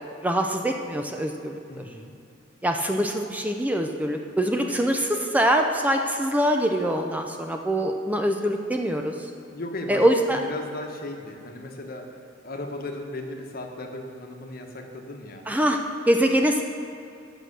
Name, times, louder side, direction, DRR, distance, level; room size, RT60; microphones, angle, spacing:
voice 1, 0.2-1.8 2.6-9.3 9.9-10.4 15.5-15.8 16.1-16.6, equal, 10° right, 3 dB, 0.4 m, -24 dB
voice 2, 1.7-2.1 9.5-10.0 10.3-15.4, left 1 dB, 50° left, 3 dB, 1.0 m, -36 dB
8.7 x 6.1 x 6.6 m, 2.6 s
head